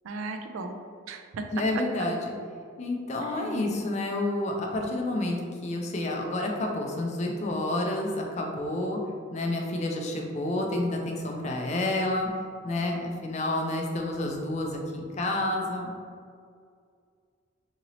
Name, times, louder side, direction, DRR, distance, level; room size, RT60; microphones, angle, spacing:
voice 1, 0.0-0.8 1.1-1.4 3.3-3.8, right 3 dB, 85° right, 5 dB, 0.3 m, -37 dB
voice 2, 1.5-2.3 2.8-5.4 5.6-9.0 9.3-12.3 12.6-15.9, left 1 dB, 35° left, 1 dB, 0.3 m, -29 dB
2.9 x 2.7 x 2.9 m, 2.2 s
head